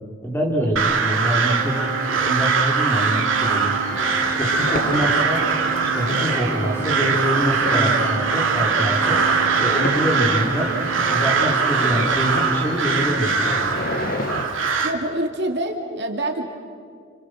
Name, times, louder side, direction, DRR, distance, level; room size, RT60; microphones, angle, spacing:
voice 1, 0.2-3.8 4.3-5.4 5.8-9.2 9.6-10.7 11.1-13.8, equal, 10° left, -1 dB, 4.4 m, -25 dB
Crow, 0.8-14.9, right 5 dB, 75° right, 2.6 m, -22 dB
Organ, 1.4-12.1, right 4 dB, 10° right, 5.3 m, -34 dB
sound 1, 3.9-14.4, left 1 dB, 50° left, 1.9 m, -31 dB
voice 2, 14.8-16.5, right 1 dB, 60° right, 2 dB, 2.6 m, -26 dB
30.0 x 28.0 x 6.5 m, 2.2 s
head